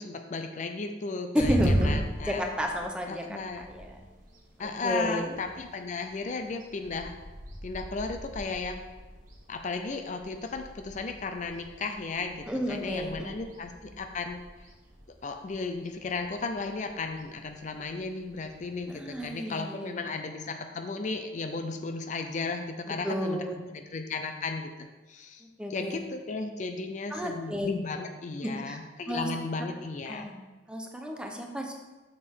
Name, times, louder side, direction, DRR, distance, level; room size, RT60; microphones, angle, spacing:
voice 1, 0.0-2.7 3.1-3.7 4.6-7.2 7.6-8.8 9.5-14.4 15.2-25.4 25.7-30.3, left 3 dB, 40° left, 6 dB, 0.5 m, -35 dB
voice 2, 1.3-2.0 2.3-4.0 4.6-5.3 12.5-13.3 18.9-20.0 22.9-23.5 25.6-26.0 27.1-27.7 28.4-29.3 30.1-30.4 30.7-31.7, equal, 5° right, 2 dB, 0.7 m, -32 dB
sound 1, 1.4-19.3, equal, 50° right, 1.3 m, -38 dB
6.7 x 6.5 x 3.6 m, 1.2 s
head